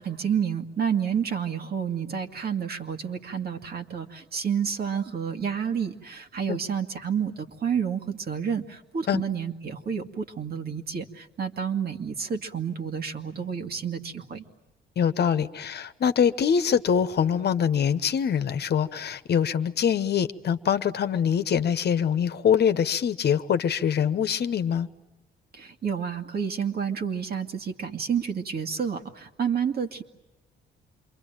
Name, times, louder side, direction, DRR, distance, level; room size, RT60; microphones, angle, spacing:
voice 1, 0.0-14.4 25.5-30.0, right 7 dB, 50° right, 2.2 m, -29 dB
voice 2, 15.0-24.9, left 8 dB, 55° left, 1.2 m, -24 dB
28.0 x 23.0 x 9.1 m
cardioid pair, 90°, 20 cm